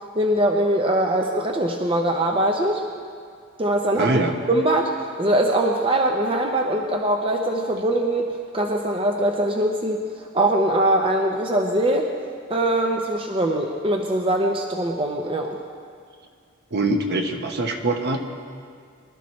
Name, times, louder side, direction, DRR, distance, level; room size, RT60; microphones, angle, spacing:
voice 1, 0.1-2.9 3.6-12.1 12.5-15.6, right 1 dB, 25° right, 2 dB, 0.7 m, -22 dB
voice 2, 4.0-4.3 16.7-18.3, right 2 dB, 50° right, 4 dB, 1.0 m, -23 dB
23.5 x 12.5 x 3.2 m, 2.1 s
head